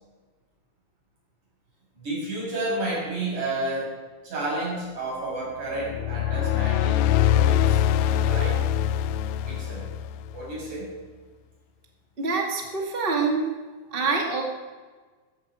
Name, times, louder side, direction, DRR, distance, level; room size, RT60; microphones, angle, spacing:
voice 1, 2.0-4.0 4.2-7.1 7.3-7.8 8.1-8.6 9.5-9.9 10.3-10.9, right 2 dB, 30° right, -5 dB, 7.0 m, -31 dB
sound 1, 5.8-10.5, left 10 dB, 85° left, 2.6 m, -23 dB
voice 2, 12.2-13.5 13.9-14.4, right 4 dB, 80° right, 0 dB, 0.5 m, -25 dB
15.5 x 14.0 x 4.9 m, 1.4 s
omnidirectional pair, 4.9 m